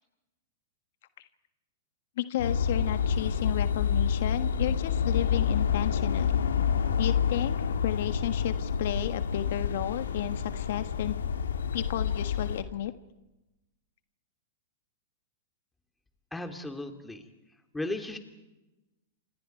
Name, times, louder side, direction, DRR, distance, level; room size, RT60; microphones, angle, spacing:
voice 1, 2.2-6.4 7.0-7.6 7.8-11.2 11.7-12.9, left 13 dB, 65° left, 10 dB, 1.4 m, -32 dB
sound 1, 2.4-12.6, left 7 dB, 85° left, 2.5 m, -28 dB
voice 2, 16.3-17.3 17.7-18.2, left 2 dB, 5° left, 6 dB, 3.0 m, -35 dB
29.0 x 27.0 x 4.7 m, 1.0 s
hypercardioid pair, 120°, 0 cm